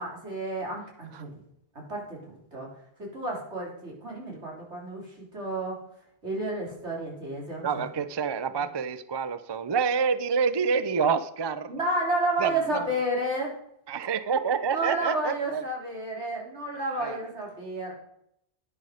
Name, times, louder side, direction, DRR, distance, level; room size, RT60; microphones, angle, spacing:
voice 1, 0.0-1.3 1.9-2.7 3.0-5.8 6.2-7.8 11.7-13.5 14.7-17.9, right 1 dB, 80° right, -1 dB, 3.7 m, -31 dB
voice 2, 7.6-11.8 12.4-12.9 13.9-15.6 17.0-17.2, right 6 dB, 35° right, 13 dB, 0.4 m, -27 dB
10.5 x 9.8 x 5.0 m, 0.74 s
omnidirectional pair, 1.1 m